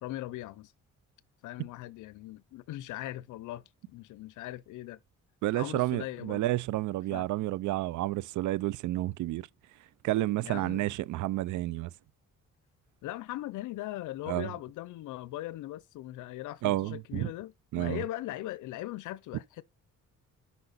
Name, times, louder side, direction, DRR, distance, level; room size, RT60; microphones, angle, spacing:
voice 1, 0.0-0.7 1.4-5.0 5.5-6.5 7.1-7.3 10.4-10.9 13.0-19.6, left 15 dB, 80° left, 0.5 m, -40 dB
voice 2, 5.4-9.5 10.0-11.9 14.3-14.5 16.6-17.3 17.7-18.0, right 16 dB, 75° right, 0.5 m, -30 dB
7.9 x 5.6 x 4.0 m
cardioid pair, 90°, 30 cm